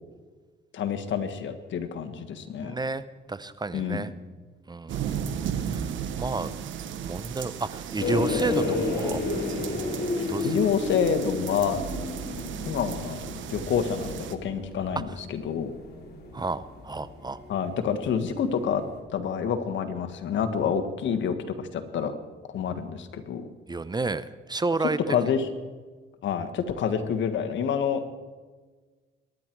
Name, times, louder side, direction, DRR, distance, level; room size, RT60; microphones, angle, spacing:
voice 1, 0.7-2.7 3.7-4.1 10.2-11.8 12.6-15.7 17.5-18.8 19.1-22.1 22.5-23.5 24.8-25.5 26.2-28.1, left 7 dB, 70° left, 7 dB, 1.5 m, -28 dB
voice 2, 2.6-4.1 4.7-5.2 5.6-5.9 6.2-6.5 7.1-9.2 10.3-10.7 16.3-17.4 23.7-25.0, right 3 dB, 20° right, 15 dB, 0.7 m, -31 dB
sound 1, 4.9-14.3, right 8 dB, 75° right, 1.1 m, -35 dB
sound 2, 8.0-18.1 18.3-18.5 18.8-18.9, left 3 dB, 55° left, 3.3 m, -32 dB
23.0 x 10.5 x 4.6 m, 1.4 s
cardioid pair, 90°, 20 cm